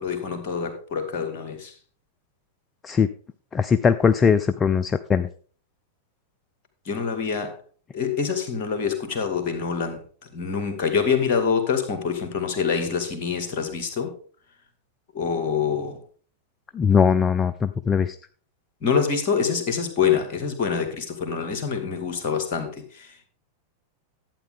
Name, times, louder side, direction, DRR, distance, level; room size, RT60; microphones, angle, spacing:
voice 1, 0.0-1.7 6.9-7.5 7.9-10.0 10.3-14.1 15.1-16.0 18.8-23.3, left 6 dB, 45° left, 7 dB, 2.2 m, -25 dB
voice 2, 3.5-5.3 16.7-18.2, left 6 dB, 20° left, 12 dB, 0.4 m, -20 dB
11.5 x 8.7 x 3.6 m, 0.43 s
figure-of-eight pair, 90°, 0 cm